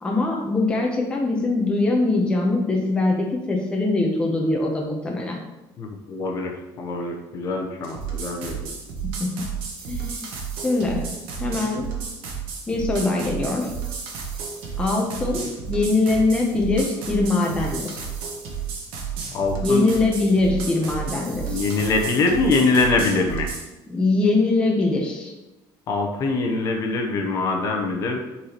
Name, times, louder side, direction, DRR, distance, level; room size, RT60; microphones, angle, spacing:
voice 1, 0.0-5.4 9.2-9.5 9.9-10.3 10.5-11.1 11.4-11.9 12.7-13.7 14.8-18.0 19.6-21.7 23.9-25.3, left 2 dB, 10° left, -1 dB, 0.7 m, -22 dB
voice 2, 5.8-8.7 19.3-19.9 21.5-23.5 25.9-28.2, left 3 dB, 40° left, 2 dB, 0.8 m, -23 dB
sound 1, 7.8-23.7, right 7 dB, 80° right, 1.2 m, -32 dB
8.3 x 4.1 x 2.9 m, 1.0 s
cardioid pair, 165°, 9 cm